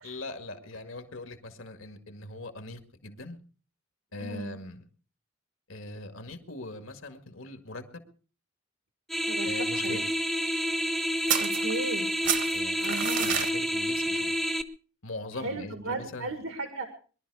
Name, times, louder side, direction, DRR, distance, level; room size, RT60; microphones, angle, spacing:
voice 1, 0.0-3.4 4.1-4.9 5.7-8.0 9.4-10.1 12.5-14.4 15.0-16.3, left 2 dB, 80° left, 7 dB, 2.1 m, -41 dB
voice 2, 4.1-4.6 9.3-10.0 11.4-12.1 12.8-13.4 15.3-16.9, right 2 dB, 90° right, 6 dB, 1.9 m, -36 dB
sound 1, 9.1-14.6, equal, ahead, 0.7 m, -29 dB
sound 2, 11.3-12.0 12.2-13.5, right 9 dB, 60° right, 1.2 m, -29 dB
22.0 x 12.0 x 4.8 m, 0.40 s
head